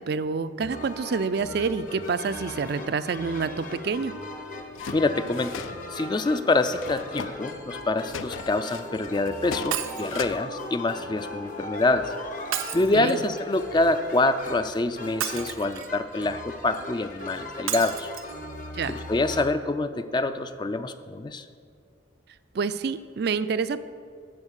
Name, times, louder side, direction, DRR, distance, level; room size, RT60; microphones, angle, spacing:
voice 1, 0.0-4.1 12.9-13.2 18.7-19.0 22.5-23.8, right 5 dB, 50° right, 12 dB, 0.4 m, -28 dB
sound 1, 0.6-19.5, left 2 dB, 40° left, 0.9 m, -39 dB
sound 2, 4.7-6.0 6.7-7.5 7.8-10.3, left 5 dB, 80° left, 0.5 m, -38 dB
voice 2, 4.9-12.1 12.7-18.1 18.9-21.5, left 2 dB, 20° left, 10 dB, 0.3 m, -26 dB
Shatter, 9.7-10.2 12.5-13.4 15.2-16.0 17.7-18.3 18.9-19.0 19.3-19.4, right 10 dB, 90° right, 0.7 m, -32 dB
13.0 x 4.5 x 8.1 m, 2.2 s
head